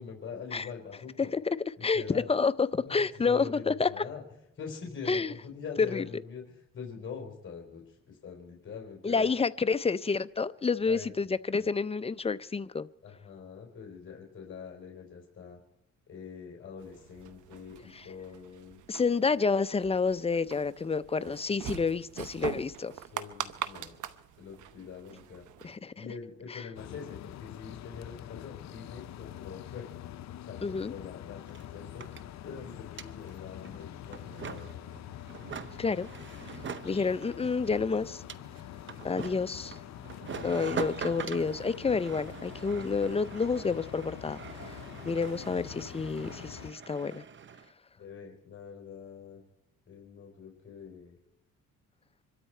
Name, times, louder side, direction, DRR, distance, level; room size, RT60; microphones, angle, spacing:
voice 1, 0.0-1.3 1.8-2.3 2.9-4.2 4.6-6.4 6.7-9.3 10.8-11.1 11.5-11.8 13.0-15.6 16.1-18.8 23.1-23.9 24.4-25.4 26.0-29.9 30.4-32.0 32.4-34.7 40.2-40.8 48.0-49.4 49.9-51.2, left 6 dB, 40° left, 3.8 m, -44 dB
voice 2, 1.2-4.0 5.1-5.3 5.8-6.1 9.0-12.9 17.9-18.1 18.9-22.9 25.6-26.0 26.5-26.7 30.6-30.9 35.8-36.1 36.8-38.2 39.0-39.8 40.4-44.7 45.1-47.2, left 4 dB, 20° left, 0.6 m, -29 dB
sound 1, 16.8-25.8, right 10 dB, 80° right, 1.0 m, -43 dB
sound 2, 26.7-46.7, left 12 dB, 65° left, 0.7 m, -45 dB
sound 3, 30.8-30.9 31.1-47.7, right 6 dB, 40° right, 0.8 m, -44 dB
25.0 x 13.0 x 4.5 m
cardioid pair, 90°, 30 cm